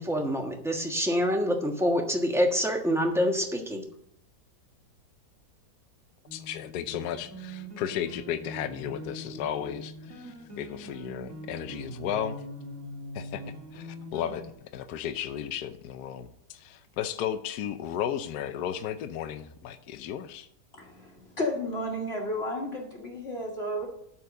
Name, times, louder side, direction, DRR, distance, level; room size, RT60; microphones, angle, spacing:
voice 1, 0.0-3.8, equal, ahead, 2 dB, 1.0 m, -26 dB
voice 2, 6.3-12.4 13.1-13.4 13.7-20.5, left 10 dB, 70° left, 9 dB, 1.2 m, -34 dB
sound 1, 6.3-14.5, equal, 40° right, 2.5 m, -42 dB
voice 3, 20.7-23.9, left 1 dB, 35° left, 0 dB, 1.7 m, -32 dB
12.5 x 4.5 x 6.5 m, 0.71 s
omnidirectional pair, 1.9 m